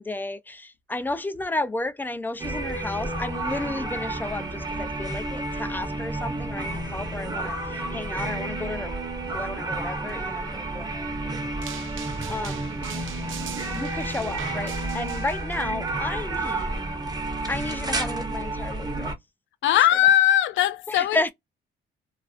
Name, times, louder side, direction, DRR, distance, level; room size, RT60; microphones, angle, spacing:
voice 1, 0.0-8.9 9.3-13.1 13.7-16.7 17.5-19.1 20.9-21.3, left 2 dB, 10° left, 0.4 m, -33 dB
sound 1, 2.4-19.1, right 2 dB, 20° right, 0.8 m, -31 dB
sound 2, 11.6-15.6, right 10 dB, 80° right, 0.6 m, -41 dB
voice 2, 19.6-21.3, left 12 dB, 70° left, 0.5 m, -20 dB
2.5 x 2.2 x 2.4 m
cardioid pair, 90°, 20 cm